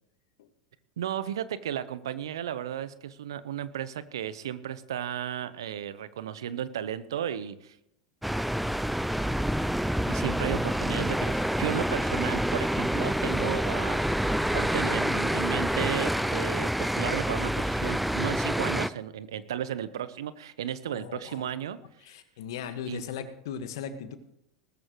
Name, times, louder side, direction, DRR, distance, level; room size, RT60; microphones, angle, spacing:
voice 1, 1.0-7.8 10.1-14.2 14.5-21.8 22.8-23.0, right 10 dB, 75° right, 15 dB, 0.9 m, -34 dB
sound 1, 8.2-18.9, equal, ahead, 0.4 m, -27 dB
voice 2, 20.9-21.4 22.0-24.2, left 7 dB, 70° left, 9 dB, 1.6 m, -38 dB
19.0 x 14.0 x 3.1 m, 0.79 s
hypercardioid pair, 90°, 2 cm